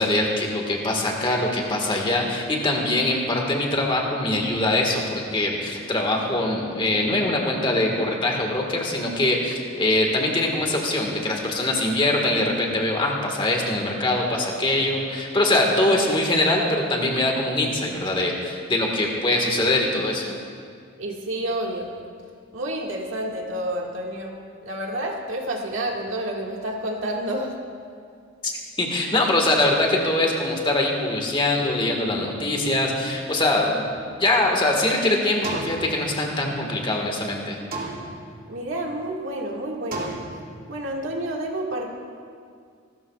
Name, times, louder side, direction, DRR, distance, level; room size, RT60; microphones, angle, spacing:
voice 1, 0.0-20.3 28.4-33.8 34.2-37.6, left 2 dB, 25° left, 0 dB, 1.7 m, -23 dB
voice 2, 15.8-16.1 21.0-21.9 22.5-24.3 24.6-27.5 38.5-40.1 40.7-41.9, right 1 dB, 80° right, -1 dB, 2.0 m, -29 dB
sound 1, 33.9-34.8 35.4-36.7 37.7-38.7 39.9-40.9, right 2 dB, 45° right, 2.7 m, -35 dB
27.0 x 13.5 x 2.4 m, 2.2 s
head